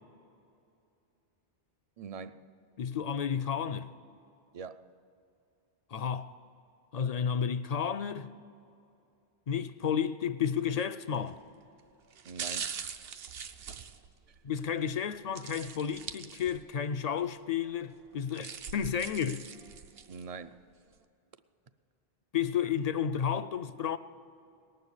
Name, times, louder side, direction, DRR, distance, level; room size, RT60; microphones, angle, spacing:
voice 1, 2.0-2.5 4.5-4.9 12.3-12.8 14.3-14.4 20.1-20.6, right 5 dB, 55° right, 0.4 m, -43 dB
voice 2, 2.8-3.9 5.9-6.3 6.9-8.3 9.5-11.4 14.4-19.5 22.3-24.0, left 8 dB, 55° left, 0.5 m, -32 dB
sound 1, 11.1-11.4 12.1-14.7 15.4-16.8 17.2-17.3 18.1-20.2 20.7-20.8, right 7 dB, 80° right, 0.9 m, -42 dB
19.0 x 6.7 x 9.7 m
omnidirectional pair, 1.0 m